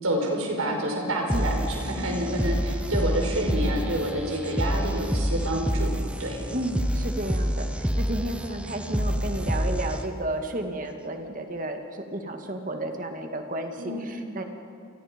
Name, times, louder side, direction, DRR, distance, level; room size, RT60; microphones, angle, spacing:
voice 1, 0.0-5.9 6.2-6.5 13.8-14.0, right 1 dB, 80° right, 1 dB, 5.2 m, -28 dB
sound 1, 1.3-10.3, equal, 5° right, 0.9 m, -28 dB
voice 2, 6.5-14.4, right 1 dB, 40° right, 4 dB, 2.2 m, -32 dB
29.5 x 23.0 x 5.3 m, 2.6 s
head